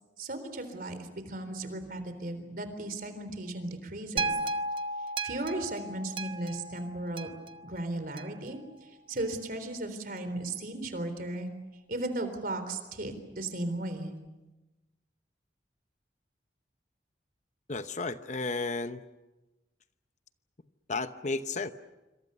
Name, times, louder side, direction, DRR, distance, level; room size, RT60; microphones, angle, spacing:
voice 1, 0.2-4.3 5.2-7.3 7.6-11.5 11.9-14.1, right 2 dB, 50° right, 9 dB, 3.8 m, -36 dB
sound 1, 4.2-8.5 9.2-9.3, right 2 dB, 30° right, 0.9 m, -35 dB
voice 2, 17.7-19.0 20.9-21.7, left 3 dB, 40° left, 10 dB, 0.9 m, -33 dB
27.0 x 26.0 x 6.8 m, 1.1 s
head